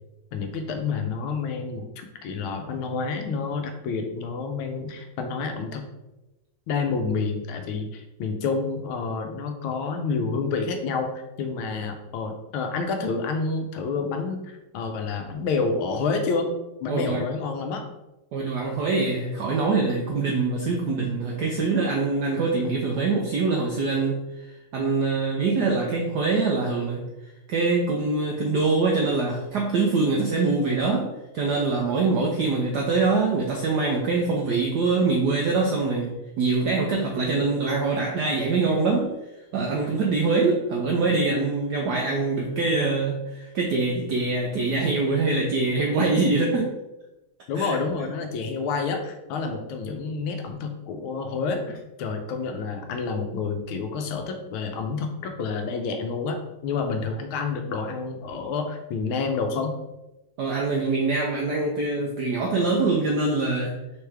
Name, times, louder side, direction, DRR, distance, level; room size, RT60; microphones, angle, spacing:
voice 1, 0.3-5.8 6.7-16.5 16.8-17.8 47.5-59.7, left 4 dB, 75° left, 4 dB, 1.5 m, -29 dB
voice 2, 16.9-17.3 18.3-24.3 24.7-27.0 27.5-36.1 36.4-39.2 39.5-46.8 47.5-47.8 60.4-63.8, right 3 dB, 80° right, 0 dB, 0.9 m, -24 dB
4.7 x 3.2 x 3.4 m, 0.97 s
omnidirectional pair, 2.4 m